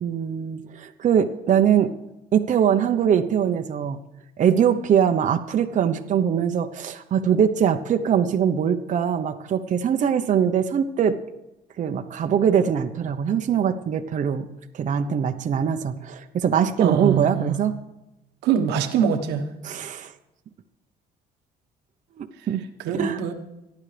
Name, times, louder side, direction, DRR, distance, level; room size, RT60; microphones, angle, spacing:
voice 1, 0.0-1.9 2.3-4.0 4.4-11.2 11.8-14.5 14.7-17.8 19.6-20.1 22.2-22.6 22.9-23.2, right 8 dB, 45° right, 5 dB, 1.0 m, -22 dB
voice 2, 16.8-17.6 18.4-19.5 22.8-23.3, right 7 dB, 90° right, 5 dB, 1.4 m, -23 dB
27.0 x 10.5 x 3.4 m, 0.97 s
cardioid pair, 110°, 17 cm